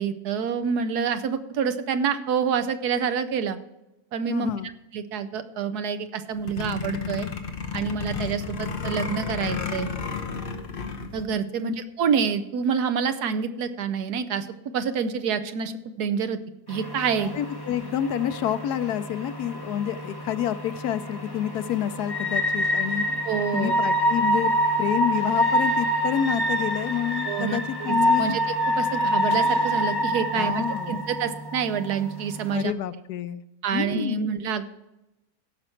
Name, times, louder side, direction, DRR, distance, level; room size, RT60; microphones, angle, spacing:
voice 1, 0.0-3.6 4.1-4.5 4.9-7.3 7.7-9.9 11.1-14.5 14.7-16.4 16.7-17.3 23.2-23.8 27.3-32.7 33.6-34.6, right 6 dB, 90° right, 11 dB, 1.4 m, -27 dB
voice 2, 4.3-4.7 11.6-11.7 17.2-23.0 23.5-24.5 24.8-28.4 30.3-31.0 32.5-33.4 33.7-34.2, left 10 dB, 90° left, 13 dB, 1.2 m, -28 dB
sound 1, 6.4-11.2, left 5 dB, 40° left, 1.1 m, -31 dB
sound 2, 16.7-32.6, equal, 15° left, 1.5 m, -26 dB
16.0 x 6.0 x 4.4 m, 0.95 s
omnidirectional pair, 1.6 m